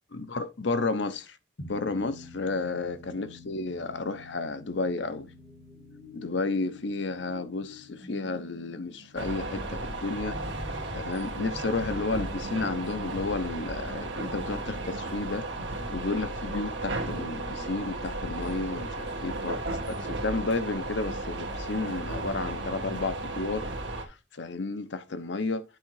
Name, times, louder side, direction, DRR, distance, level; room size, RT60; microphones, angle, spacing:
voice 1, 0.1-1.4 1.7-5.3 6.1-10.4 10.9-15.5 15.9-23.7 24.4-25.6, left 3 dB, 65° left, 0.8 m, -32 dB
sound 1, 1.6-12.3, left 2 dB, 85° left, 2.5 m, -50 dB
sound 2, 5.4-17.7, left 1 dB, 25° left, 0.9 m, -51 dB
sound 3, 9.2-24.0, right 2 dB, 70° right, 1.7 m, -34 dB
8.6 x 3.8 x 4.7 m
head